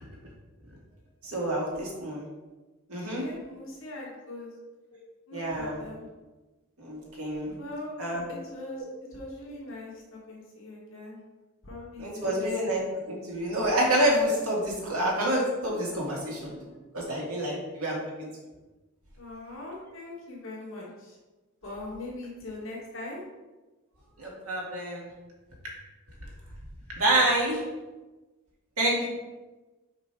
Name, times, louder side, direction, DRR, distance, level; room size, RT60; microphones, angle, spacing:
voice 1, 1.2-2.3 2.9-3.2 5.3-5.9 6.8-7.5 8.0-8.2 12.0-16.6 16.9-18.3 24.2-25.1 26.9-27.6 28.8-29.0, right 1 dB, 85° right, -3 dB, 2.2 m, -28 dB
voice 2, 2.9-4.5 5.3-6.1 7.6-7.9 8.3-11.2 11.6-12.4 19.2-21.2 21.6-23.2, left 2 dB, 65° left, -4 dB, 1.7 m, -41 dB
5.2 x 5.2 x 4.7 m, 1.2 s
head